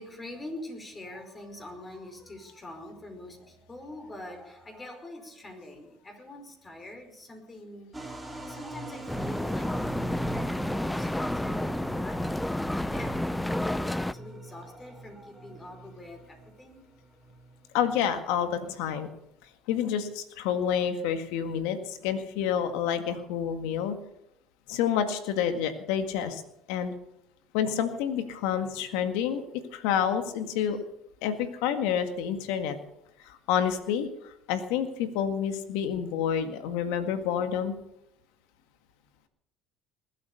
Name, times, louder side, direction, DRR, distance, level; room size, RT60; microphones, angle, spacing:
voice 1, 0.0-8.0 8.5-16.9, left 1 dB, 25° left, 4 dB, 5.1 m, -44 dB
sound 1, 7.9-18.8, right 2 dB, 10° right, 3.6 m, -43 dB
sound 2, 9.1-14.1, left 1 dB, 5° left, 0.5 m, -30 dB
voice 2, 17.7-19.1 19.7-24.0 24.7-26.4 26.7-26.9 27.5-30.8 31.2-32.8 33.2-37.8, left 8 dB, 80° left, 8 dB, 1.9 m, -29 dB
20.5 x 8.6 x 6.9 m, 0.83 s
supercardioid pair, 85°, 0 cm